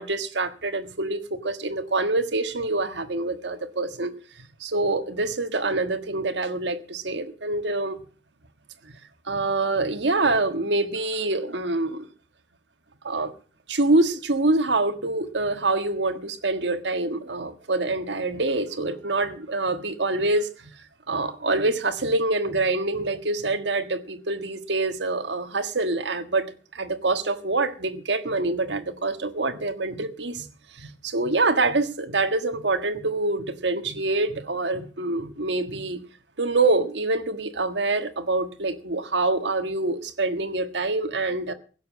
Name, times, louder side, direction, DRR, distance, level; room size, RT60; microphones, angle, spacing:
voice 1, 0.0-4.1 4.6-8.0 9.2-12.1 13.0-13.3 13.7-20.7 21.1-30.5 30.7-36.0 36.4-41.5, right 2 dB, 75° right, 1.5 m, -25 dB
16.5 x 7.0 x 8.5 m
head